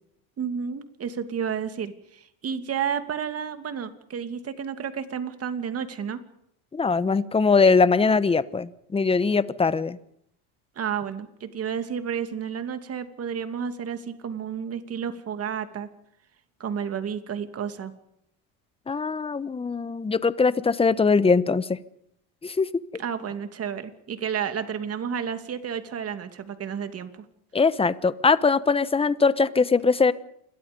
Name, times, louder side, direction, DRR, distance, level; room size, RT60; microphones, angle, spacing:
voice 1, 0.4-6.2 10.8-15.9 16.6-17.9 23.0-27.2, right 7 dB, 35° right, 9 dB, 2.7 m, -31 dB
voice 2, 6.7-10.0 18.9-21.8 22.4-22.7 27.5-30.1, left 4 dB, 15° left, 16 dB, 1.0 m, -21 dB
28.5 x 22.5 x 5.4 m, 0.75 s
supercardioid pair, 120°, 43 cm